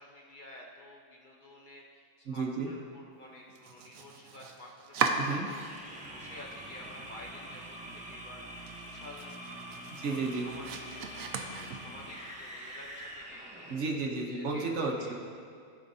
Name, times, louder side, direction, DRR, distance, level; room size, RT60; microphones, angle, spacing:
voice 1, 0.0-5.7 6.1-9.3 10.0-13.7 14.2-15.1, left 1 dB, 45° left, -2 dB, 0.8 m, -51 dB
voice 2, 2.3-2.7 5.2-5.5 10.0-10.5 13.7-15.1, right 3 dB, 65° right, 0 dB, 1.1 m, -32 dB
Domestic sounds home sounds, 3.5-6.1 6.4-7.1 7.5-7.6 8.0-8.1 8.5-12.2, right 5 dB, 85° right, 1.0 m, -37 dB
sound 1, 5.6-14.1, right 1 dB, 5° right, 0.7 m, -45 dB
15.0 x 5.1 x 2.7 m, 2.2 s
omnidirectional pair, 1.4 m